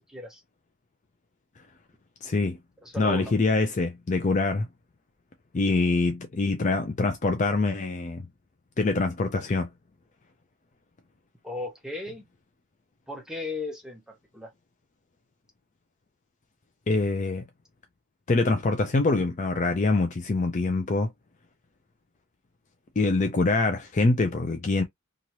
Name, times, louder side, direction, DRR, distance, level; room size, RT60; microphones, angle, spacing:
voice 1, 0.1-0.4 2.8-3.3 11.4-12.3 13.1-14.5, left 2 dB, 5° right, 0.9 m, -36 dB
voice 2, 2.2-2.6 3.0-4.7 5.5-8.3 8.8-9.7 16.9-17.4 18.3-21.1 23.0-24.8, left 3 dB, 35° left, 0.4 m, -24 dB
3.0 x 2.5 x 2.8 m
head